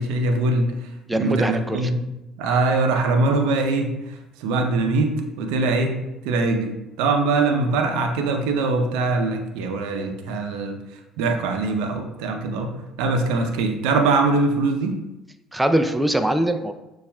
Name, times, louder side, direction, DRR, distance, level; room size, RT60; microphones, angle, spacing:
voice 1, 0.0-2.0 2.4-5.9 6.2-10.8 11.2-12.7 13.0-15.0, right 3 dB, 80° right, 4 dB, 0.5 m, -22 dB
voice 2, 1.1-1.8 15.5-16.7, right 1 dB, 10° right, 7 dB, 0.4 m, -22 dB
6.7 x 2.4 x 2.2 m, 0.97 s
supercardioid pair, 70°, 0 cm